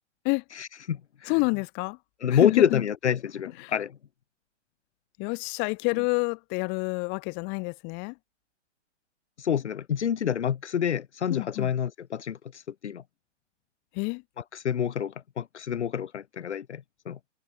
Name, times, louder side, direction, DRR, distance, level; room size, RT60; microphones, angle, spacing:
voice 1, 0.6-1.3 2.2-3.9 9.4-13.0 14.5-17.2, left 8 dB, 65° left, 2.3 m, -28 dB
voice 2, 1.3-2.0 2.3-2.8 3.6-3.7 5.2-8.1 11.3-11.7 13.9-14.2, left 32 dB, 30° left, 3.7 m, -28 dB
hypercardioid pair, 140°, 36 cm